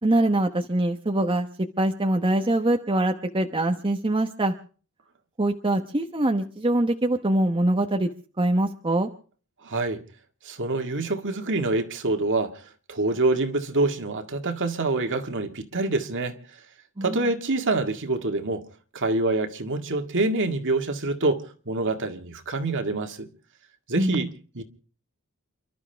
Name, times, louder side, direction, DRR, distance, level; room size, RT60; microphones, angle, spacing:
voice 1, 0.0-1.5 1.8-4.5 5.4-8.1 8.4-9.1 17.0-17.3 23.9-24.3, right 1 dB, 25° right, 1.0 m, -23 dB
voice 2, 9.6-10.0 10.4-16.4 17.0-18.7 18.9-23.3 23.9-24.6, right 2 dB, 55° right, 1.9 m, -26 dB
29.0 x 12.5 x 3.4 m
head